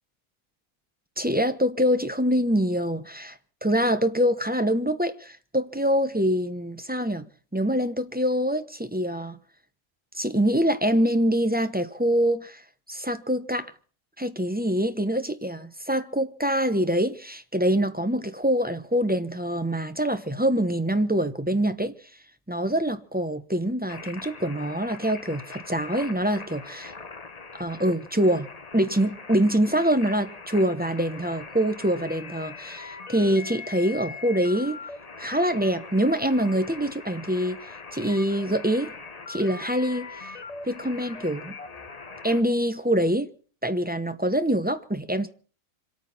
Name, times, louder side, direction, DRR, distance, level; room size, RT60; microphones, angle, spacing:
voice 1, 1.2-9.4 10.1-12.6 12.9-13.7 14.2-21.9 22.5-26.9 27.6-28.5 28.7-34.8 35.2-37.6 37.9-38.9 39.3-40.3 40.7-41.5 42.2-43.3 43.6-45.3, equal, 10° right, 0.6 m, -25 dB
sound 1, 23.9-42.4, left 4 dB, 30° left, 1.0 m, -41 dB
26.0 x 9.1 x 5.9 m
omnidirectional pair, 1.7 m